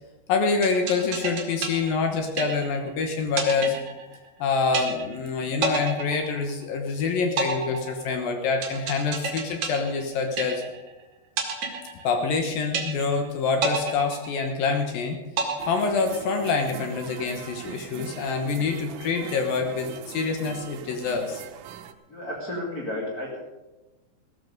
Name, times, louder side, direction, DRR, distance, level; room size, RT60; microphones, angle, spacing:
voice 1, 0.3-3.8 4.4-10.6 12.0-15.2 15.7-21.4, left 4 dB, 70° left, 5 dB, 2.2 m, -26 dB
sound 1, 0.6-2.9 3.4-4.4 4.7-5.3 5.6-6.9 7.4-10.9 11.4-12.4 12.7-13.3 13.6-14.9 15.4-16.4, right 5 dB, 50° right, 2.6 m, -30 dB
sound 2, 15.6-21.9, right 10 dB, 80° right, 3.0 m, -41 dB
voice 2, 22.1-23.4, left 1 dB, 30° left, -3 dB, 1.7 m, -32 dB
15.5 x 13.0 x 5.2 m, 1.1 s
omnidirectional pair, 5.5 m